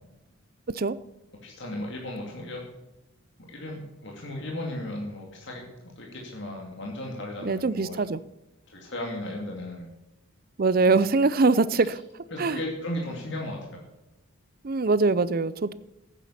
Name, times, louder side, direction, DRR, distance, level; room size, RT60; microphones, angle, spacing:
voice 1, 1.4-2.6 3.5-8.0 8.7-9.9 10.8-11.0 12.3-13.8, left 1 dB, 55° left, 2.4 m, -35 dB
voice 2, 7.4-8.2 10.6-12.0 12.4-12.6 14.6-15.7, right 3 dB, 45° right, 0.5 m, -23 dB
15.0 x 9.1 x 5.9 m
head